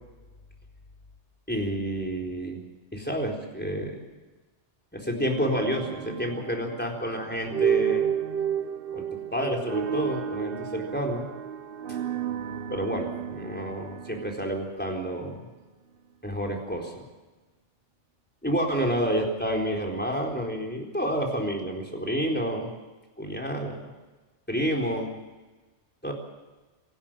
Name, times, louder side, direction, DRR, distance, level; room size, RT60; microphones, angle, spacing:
voice 1, 1.5-2.6 2.9-4.0 4.9-8.1 8.9-9.1 9.3-11.3 11.9-12.0 12.7-15.5 16.2-17.0 18.4-22.7 23.2-23.9 24.5-25.1 26.0-26.1, equal, 10° left, 1 dB, 4.2 m, -29 dB
sound 1, 5.3-15.4, right 8 dB, 55° right, 0.9 m, -32 dB
26.0 x 12.0 x 9.0 m, 1.2 s
omnidirectional pair, 1.3 m